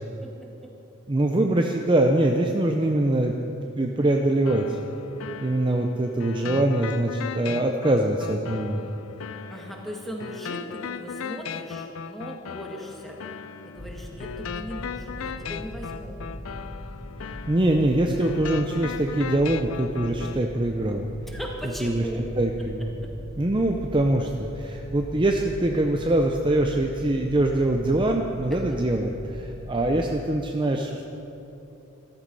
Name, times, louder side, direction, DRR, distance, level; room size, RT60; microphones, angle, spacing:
voice 1, 1.1-3.3 3.6-4.7 5.4-8.8 17.2-21.0 21.8-22.0 22.4-22.9 23.4-31.0, right 1 dB, 25° right, 3 dB, 0.6 m, -23 dB
sound 1, 4.5-20.4, left 6 dB, 70° left, 0.5 m, -37 dB
voice 2, 9.5-13.2 13.6-16.2 21.3-22.2 23.0-23.1 28.5-28.8, equal, ahead, -1 dB, 1.8 m, -38 dB
sound 2, 13.8-30.1, equal, 30° left, 1.0 m, -40 dB
13.5 x 13.5 x 5.5 m, 3.0 s
head